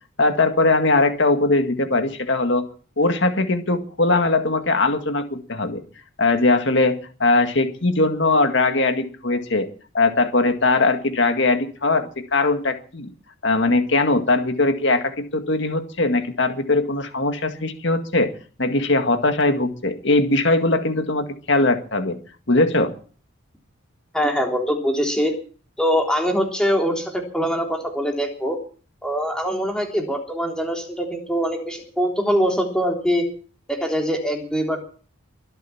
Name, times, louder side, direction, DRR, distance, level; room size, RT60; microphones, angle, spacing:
voice 1, 0.2-2.7 3.0-5.8 6.2-9.7 9.9-13.1 13.4-18.3 18.6-22.2 22.5-22.9, left 2 dB, 60° left, 7 dB, 1.9 m, -20 dB
voice 2, 24.1-25.3 25.8-28.6 29.0-33.2 33.7-34.8, equal, 5° left, 2 dB, 3.4 m, -23 dB
23.5 x 8.1 x 7.2 m, 0.42 s
head